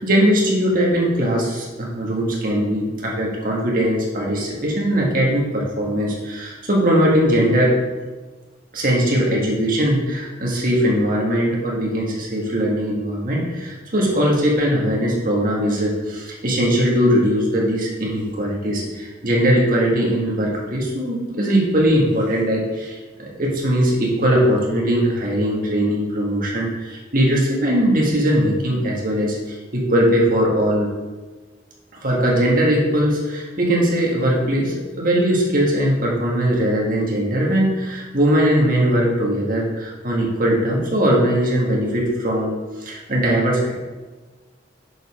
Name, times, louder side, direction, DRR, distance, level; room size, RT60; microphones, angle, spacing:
voice 1, 0.0-7.7 8.7-30.9 32.0-42.5 42.8-43.7, equal, 50° right, -3 dB, 1.7 m, -20 dB
6.6 x 5.4 x 4.8 m, 1.3 s
head